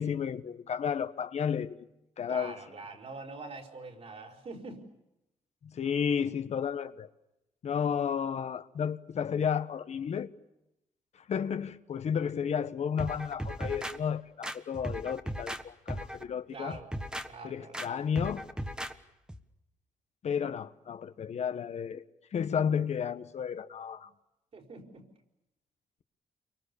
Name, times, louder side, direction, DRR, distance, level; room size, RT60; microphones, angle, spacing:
voice 1, 0.0-1.8 2.2-2.6 5.6-7.1 7.6-10.3 11.3-16.8 17.4-18.4 20.2-22.0 22.3-24.1, left 7 dB, 60° left, 1.2 m, -32 dB
voice 2, 2.3-4.8 16.5-16.9 17.3-17.8 24.5-25.0, right 3 dB, 55° right, 5.1 m, -44 dB
sound 1, 13.0-14.0 14.4-15.6 15.9-16.2 16.7-17.3 17.7-17.9 18.2-18.9 19.3-19.4, equal, 5° right, 1.4 m, -37 dB
29.5 x 24.0 x 7.0 m
cardioid pair, 115°, 13 cm